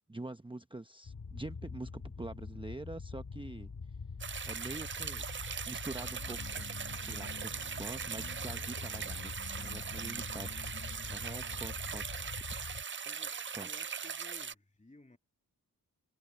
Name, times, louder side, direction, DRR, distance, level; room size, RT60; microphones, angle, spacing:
voice 1, 0.1-3.7 4.4-5.3 5.7-10.5 11.1-12.0 13.5-13.7, right 2 dB, 15° right, 0.9 m, -45 dB
sound 1, 1.0-12.8, left 4 dB, 60° left, 2.1 m, -45 dB
sound 2, 4.2-14.5, right 7 dB, 35° right, 0.4 m, -40 dB
sound 3, 6.0-11.8, left 5 dB, 40° left, 1.0 m, -54 dB
voice 2, 13.0-15.2, left 2 dB, 20° left, 2.6 m, -58 dB
cardioid pair, 55°, 37 cm